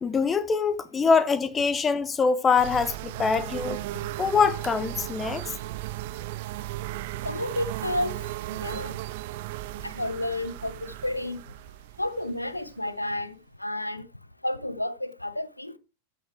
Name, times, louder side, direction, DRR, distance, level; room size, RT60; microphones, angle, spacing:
voice 1, 0.0-3.8 4.2-5.4, left 5 dB, 20° left, 1.0 m, -24 dB
sound 1, 2.6-13.2, right 16 dB, 50° right, 0.6 m, -36 dB
voice 2, 5.3-6.6 7.2-8.2 8.5-9.0 9.8-11.4 12.0-14.1 14.4-15.8, left 1 dB, 85° left, 0.8 m, -32 dB
13.5 x 6.2 x 4.7 m
figure-of-eight pair, 90°, 0 cm